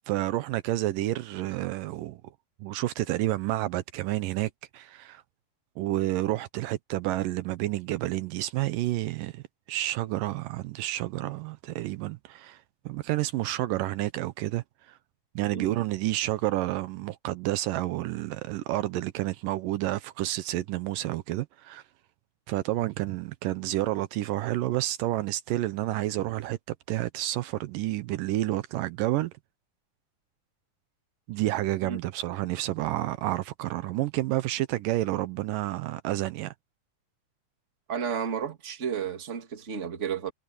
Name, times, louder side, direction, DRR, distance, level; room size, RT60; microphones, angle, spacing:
voice 1, 0.1-2.2 2.6-5.2 5.8-9.4 9.7-12.6 12.9-14.6 15.4-21.8 22.5-26.6 26.9-29.3 31.3-36.5, right 16 dB, 80° right, 2.3 m, -30 dB
voice 2, 37.9-40.3, right 7 dB, 25° right, 1.9 m, -32 dB
omnidirectional pair, 4.0 m